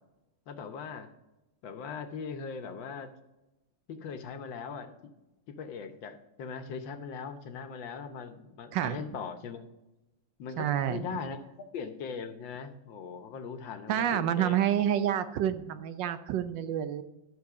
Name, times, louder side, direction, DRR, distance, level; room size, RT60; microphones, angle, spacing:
voice 1, 0.5-1.1 1.6-3.1 3.9-5.1 5.5-9.7 10.4-11.4 11.7-14.7, left 5 dB, 90° left, 7 dB, 1.7 m, -40 dB
voice 2, 10.6-11.0 13.9-17.0, right 10 dB, 80° right, 11 dB, 1.4 m, -28 dB
11.5 x 6.5 x 4.8 m, 0.98 s
omnidirectional pair, 2.0 m